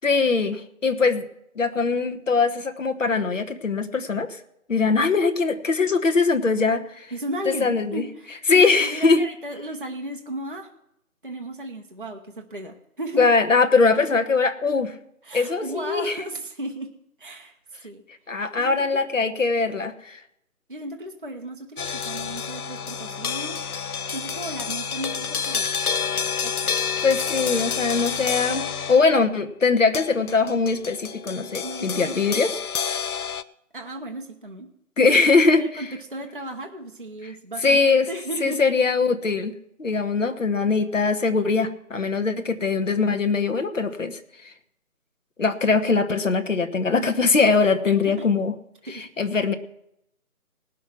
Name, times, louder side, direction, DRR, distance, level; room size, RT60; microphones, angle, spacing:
voice 1, 0.0-1.2 1.6-4.4 4.7-7.1 7.4-8.0 8.5-9.2 13.2-14.9 15.3-16.2 18.3-20.2 27.0-32.6 35.0-35.6 37.2-37.3 37.6-38.1 38.4-44.2 44.4-44.5 45.4-48.5 48.9-49.5, left 4 dB, 55° left, 8 dB, 1.2 m, -21 dB
voice 2, 7.1-10.7 11.2-13.3 15.2-16.9 17.2-17.6 17.8-18.0 18.6-19.0 20.7-23.6 24.1-25.7 26.4-26.8 31.6-32.1 33.7-34.7 35.0-35.2 35.5-38.6 47.9-48.3 48.9-49.1, right 1 dB, 35° right, 2 dB, 0.7 m, -35 dB
sound 1, 21.8-29.3 29.9-33.4, left 7 dB, 75° left, 0.7 m, -29 dB
18.5 x 6.2 x 6.1 m, 0.77 s
figure-of-eight pair, 175°, 44 cm